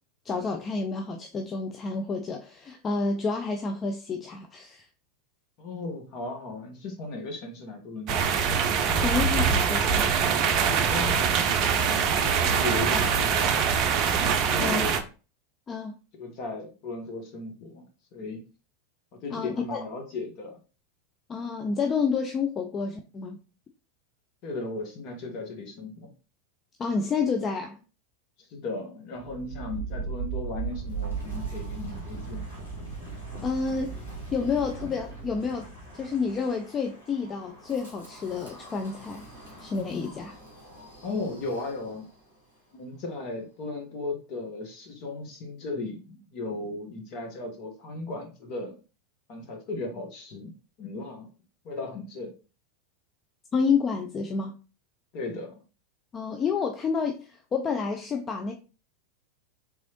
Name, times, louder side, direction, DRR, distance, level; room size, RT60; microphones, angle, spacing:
voice 1, 0.3-4.8 9.0-10.2 14.6-14.9 15.7-15.9 19.3-19.8 21.3-23.4 26.8-27.8 33.4-34.0 34.3-35.7 35.9-39.3 39.6-40.4 53.5-54.5 56.1-58.5, left 5 dB, 25° left, 0.4 m, -29 dB
voice 2, 5.6-8.4 10.8-11.4 11.8-13.6 14.4-15.0 16.1-18.4 19.1-20.6 24.4-26.1 28.5-32.5 41.0-42.1 42.7-48.8 49.3-50.5 50.8-51.3 51.6-52.3 55.1-55.5, left 3 dB, 45° left, 1.1 m, -36 dB
sound 1, 8.1-15.0, right 6 dB, 45° right, 0.5 m, -23 dB
Wind, 29.2-42.2, right 4 dB, 80° left, 1.7 m, -39 dB
3.6 x 3.0 x 2.9 m
figure-of-eight pair, 85°, 0 cm